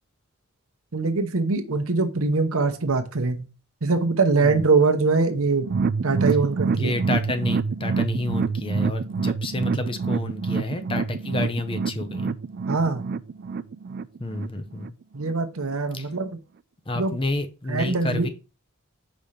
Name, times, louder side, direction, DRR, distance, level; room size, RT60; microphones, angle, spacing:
voice 1, 0.9-3.5 3.8-5.7 6.0-7.0 12.7-13.1 15.1-16.3 16.9-17.2 17.7-18.3, right 3 dB, 70° right, 8 dB, 0.9 m, -23 dB
sound 1, 5.6-14.9 15.2-15.3 15.7-15.8, right 4 dB, 45° right, 0.3 m, -27 dB
voice 2, 6.7-12.3 14.2-14.9 15.9-16.1 16.9-18.3, left 2 dB, 25° left, 7 dB, 0.7 m, -30 dB
5.4 x 4.3 x 5.0 m, 0.31 s
head